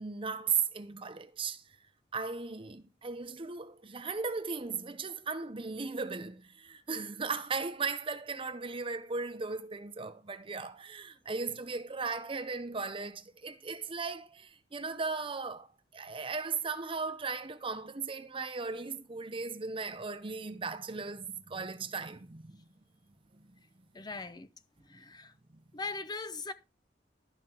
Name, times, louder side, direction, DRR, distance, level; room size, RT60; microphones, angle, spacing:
voice 1, 0.0-1.6 2.1-15.7 15.9-22.6 23.3-23.4, right 4 dB, 30° right, 0.7 m, -37 dB
voice 2, 23.9-24.5 24.9-25.3 25.7-26.5, left 3 dB, 25° left, 0.6 m, -39 dB
12.0 x 5.8 x 4.4 m
head